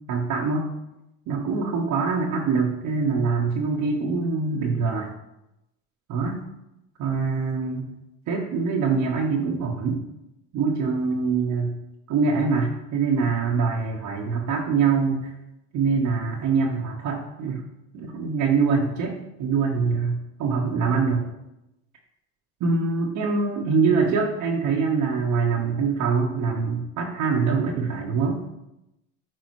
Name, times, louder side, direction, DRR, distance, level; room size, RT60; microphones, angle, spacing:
voice 1, 0.1-0.7 1.3-5.1 6.1-6.4 7.0-7.9 8.3-10.0 10.5-11.7 12.1-15.3 15.7-17.6 17.9-21.3 22.6-28.4, right 5 dB, 55° right, -2 dB, 1.3 m, -24 dB
8.9 x 4.7 x 3.1 m, 0.89 s
hypercardioid pair, 70°, 37 cm